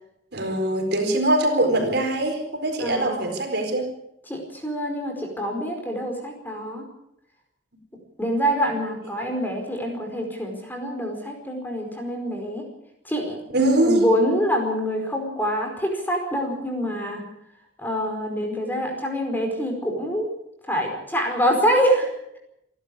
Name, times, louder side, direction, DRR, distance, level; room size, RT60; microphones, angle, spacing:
voice 1, 0.3-3.9 9.1-9.2 13.5-14.0, right 1 dB, 60° right, 4 dB, 4.4 m, -22 dB
voice 2, 2.8-3.3 4.3-6.8 8.2-12.7 13.0-13.4 13.8-17.2 17.8-20.3 20.7-22.4, equal, 10° left, 2 dB, 4.8 m, -25 dB
28.0 x 12.0 x 8.5 m, 0.81 s
head